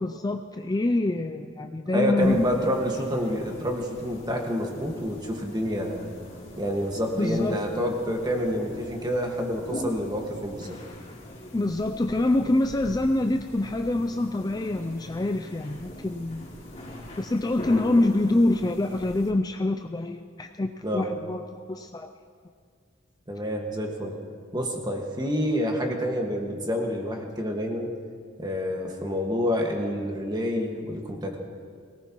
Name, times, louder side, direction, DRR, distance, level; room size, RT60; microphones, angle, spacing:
voice 1, 0.0-2.4 7.2-7.6 11.5-16.5 17.2-22.1, left 2 dB, 20° left, 6 dB, 0.4 m, -26 dB
voice 2, 1.9-6.1 6.6-10.8 17.6-17.7 20.8-21.1 23.3-24.2 24.5-27.9 28.4-31.4, equal, 20° right, 1 dB, 1.6 m, -28 dB
sound 1, 2.2-19.3, left 1 dB, 35° left, 4.3 m, -42 dB
23.0 x 18.0 x 3.0 m, 2.1 s
head